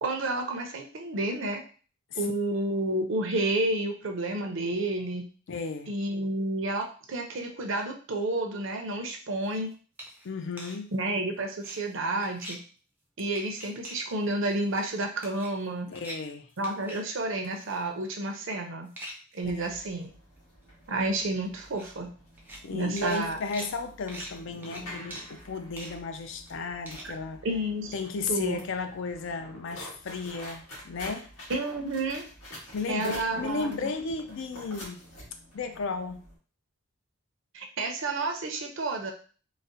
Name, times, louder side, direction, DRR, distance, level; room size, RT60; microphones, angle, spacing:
voice 1, 0.0-1.6 2.2-5.3 5.9-9.7 10.9-12.6 13.2-15.9 16.6-18.9 19.3-20.1 20.9-22.1 22.7-23.4 27.0-27.1 27.4-27.9 28.3-28.6 31.5-32.2 32.9-33.9 37.5-39.1, right 2 dB, 60° right, 3 dB, 0.6 m, -30 dB
voice 2, 5.5-5.9 10.2-10.9 15.9-16.5 19.6-19.7 22.6-27.5 27.9-31.3 32.7-35.0 35.5-36.2, left 4 dB, 60° left, 7 dB, 0.4 m, -34 dB
sound 1, 9.4-9.6 10.0-10.2 10.6-10.8 11.5-11.8 12.2-12.6 13.3-14.0 14.5-14.9 15.2-15.7 15.9-16.2 16.5-17.0 17.4-17.8 18.9-19.4 20.0-20.1 20.4-20.5 20.6-20.7 21.7-21.9 22.4-22.6 23.0-27.1, equal, 10° right, 0.4 m, -43 dB
sound 2, 19.4-36.3, equal, 85° left, 1.6 m, -47 dB
3.9 x 2.1 x 2.6 m, 0.39 s
head